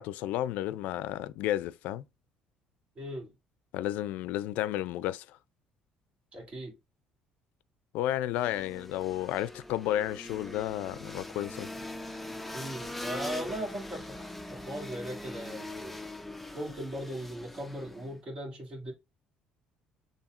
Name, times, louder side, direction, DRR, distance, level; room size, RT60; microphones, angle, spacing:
voice 1, 0.0-2.0 3.7-5.3 7.9-11.7, left 13 dB, 80° left, 0.3 m, -32 dB
voice 2, 3.0-3.3 6.3-6.7 12.5-16.0 16.5-18.9, equal, 35° right, 2.1 m, -38 dB
sound 1, 8.3-18.2, left 1 dB, 5° left, 0.4 m, -42 dB
7.0 x 2.7 x 2.5 m
cardioid pair, 130°, 3 cm